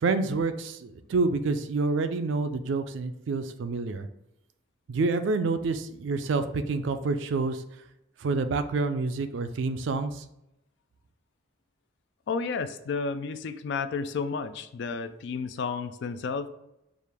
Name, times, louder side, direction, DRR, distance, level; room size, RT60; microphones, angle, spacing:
voice 1, 0.0-4.1 4.9-7.6 8.2-10.2, right 3 dB, 65° right, 10 dB, 0.3 m, -28 dB
voice 2, 12.3-16.5, left 5 dB, 60° left, 11 dB, 0.3 m, -32 dB
4.8 x 2.4 x 3.4 m, 0.85 s
head